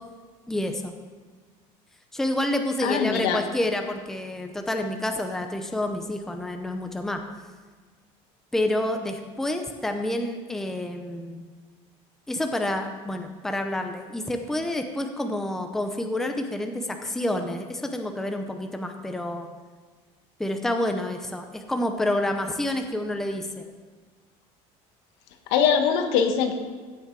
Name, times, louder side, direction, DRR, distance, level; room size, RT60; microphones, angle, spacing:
voice 1, 0.5-0.9 2.1-7.2 8.5-11.4 12.3-19.5 20.4-23.6, left 1 dB, 5° left, 5 dB, 0.7 m, -28 dB
voice 2, 2.8-3.4 25.5-26.5, left 7 dB, 85° left, 5 dB, 1.6 m, -22 dB
15.5 x 8.5 x 4.7 m, 1.4 s
cardioid pair, 175°, 14 cm